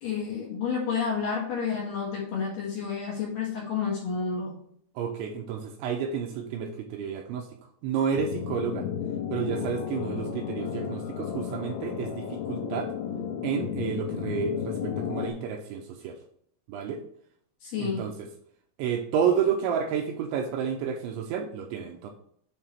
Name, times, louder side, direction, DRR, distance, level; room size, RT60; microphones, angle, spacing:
voice 1, 0.0-4.6 17.6-18.0, left 6 dB, 60° left, -3 dB, 2.4 m, -30 dB
voice 2, 5.0-7.5 7.8-8.8 9.3-12.9 13.4-16.2 16.7-17.0 17.8-18.3 18.8-22.1, right 7 dB, 85° right, 3 dB, 2.8 m, -30 dB
sound 1, 8.2-15.3, left 8 dB, 80° left, 3.2 m, -33 dB
8.8 x 3.6 x 4.4 m, 0.67 s
omnidirectional pair, 5.8 m